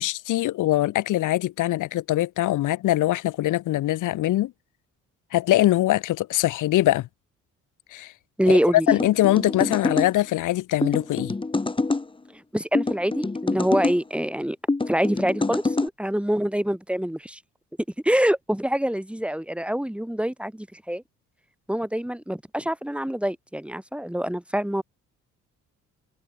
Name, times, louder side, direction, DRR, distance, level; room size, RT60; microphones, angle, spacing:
voice 1, 0.0-4.5 5.3-7.1 7.9-8.1 8.5-8.6 8.9-11.3, left 15 dB, 85° left, 4.2 m, -22 dB
voice 2, 8.4-8.9 12.5-14.6 14.9-17.4 18.0-21.0 21.7-24.8, equal, 5° right, 6.6 m, -25 dB
sound 1, 8.9-10.1 10.8-12.0 12.7-14.0 14.7-15.9, left 3 dB, 15° left, 1.6 m, -25 dB
cardioid pair, 90°, 30 cm